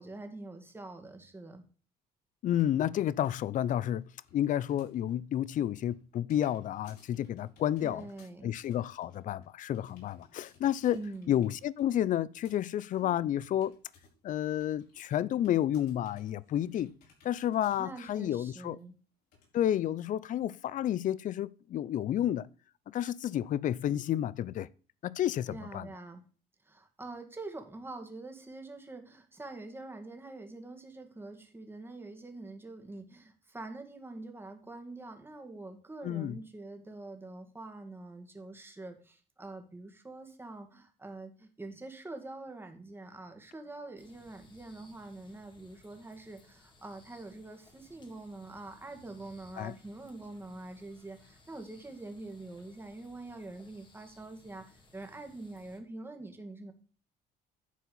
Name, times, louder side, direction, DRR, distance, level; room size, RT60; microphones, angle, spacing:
voice 1, 0.0-1.6 7.8-8.5 10.9-11.4 17.8-19.0 25.5-26.3 26.6-56.7, right 2 dB, 15° right, 2.0 m, -45 dB
voice 2, 2.4-8.1 8.4-11.0 11.3-13.8 14.2-16.9 17.2-18.8 19.5-22.5 22.9-24.7 25.0-25.9 36.0-36.4 49.6-49.7, left 11 dB, 50° left, 0.5 m, -31 dB
sound 1, 2.6-3.5 3.8-5.2 5.5-14.2 14.5-15.0 15.4-18.4 18.8-18.9 19.3-19.5, left 5 dB, 70° left, 5.4 m, -62 dB
sound 2, 44.0-55.8, left 2 dB, 30° left, 2.0 m, -61 dB
11.0 x 4.6 x 6.9 m
cardioid pair, 110°, 17 cm